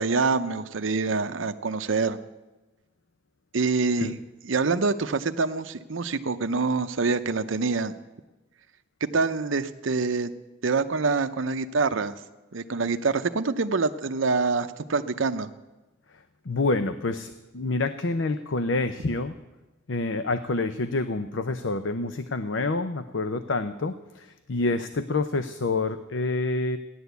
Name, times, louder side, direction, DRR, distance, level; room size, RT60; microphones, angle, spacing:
voice 1, 0.0-2.2 3.5-4.2 4.4-7.9 9.0-10.3 10.6-12.2 12.5-15.5, right 4 dB, 75° right, 8 dB, 0.7 m, -26 dB
voice 2, 16.5-19.4 19.9-26.8, left 3 dB, 65° left, 11 dB, 0.7 m, -27 dB
16.0 x 11.0 x 8.1 m, 1.1 s
head